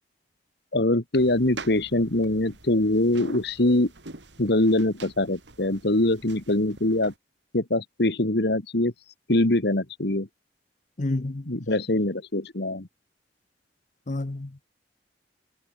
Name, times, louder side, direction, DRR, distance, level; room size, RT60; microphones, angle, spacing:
voice 1, 0.7-3.9 4.4-7.1 7.5-8.9 9.3-10.3 11.5-12.9, left 1 dB, 65° left, 1.9 m, -23 dB
sound 1, 1.1-7.2, right 3 dB, 80° right, 3.9 m, -45 dB
voice 2, 11.0-11.5 14.1-14.6, left 2 dB, 45° left, 0.8 m, -29 dB
head